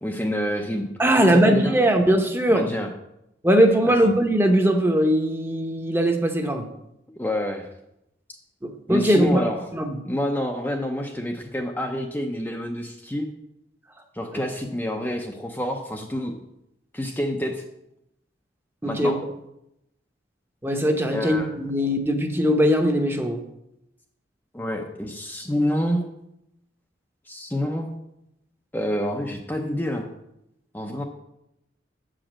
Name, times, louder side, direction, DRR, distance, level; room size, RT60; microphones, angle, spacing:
voice 1, 0.0-1.7 2.5-2.9 3.9-4.2 7.2-7.7 8.9-9.7 10.0-13.3 14.1-16.3 16.9-17.6 18.8-19.2 21.1-21.6 24.5-26.0 27.3-27.9 28.7-30.1 30.7-31.0, equal, 10° left, 2 dB, 0.6 m, -28 dB
voice 2, 1.0-2.7 3.4-6.7 8.6-9.4 9.7-9.9 18.8-19.1 20.6-23.4, equal, 15° right, 4 dB, 1.0 m, -20 dB
8.4 x 5.0 x 7.3 m, 0.84 s
head